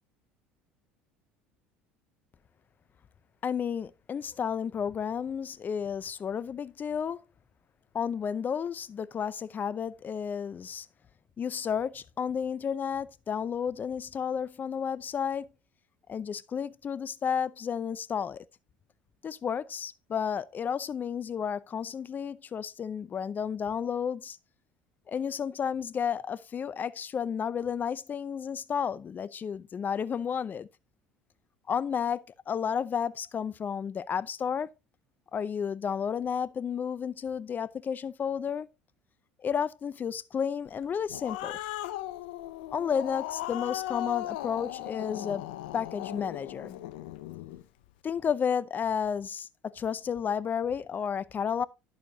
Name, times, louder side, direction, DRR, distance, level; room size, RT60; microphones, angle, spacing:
voice 1, 3.4-7.2 7.9-10.9 11.4-15.5 16.1-18.4 19.2-24.4 25.1-30.7 31.7-34.7 35.3-38.7 39.4-41.6 42.7-45.4 45.7-46.8 48.0-51.7, left 7 dB, 35° left, 0.6 m, -32 dB
Growling, 40.8-47.6, left 14 dB, 80° left, 0.7 m, -37 dB
11.0 x 7.1 x 2.8 m
hypercardioid pair, 75°, 5 cm